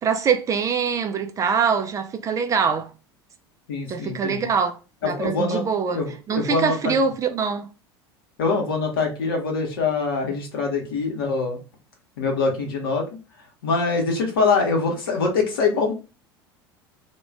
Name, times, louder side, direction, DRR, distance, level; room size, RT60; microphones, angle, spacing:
voice 1, 0.0-2.9 3.9-6.0 6.3-7.7, right 6 dB, 25° right, 0.3 m, -24 dB
voice 2, 3.7-4.5 5.0-5.6 5.9-6.9 8.4-11.6 12.2-13.1 13.6-15.9, left 4 dB, 65° left, 0.9 m, -24 dB
2.3 x 2.1 x 3.3 m
figure-of-eight pair, 75°, 13 cm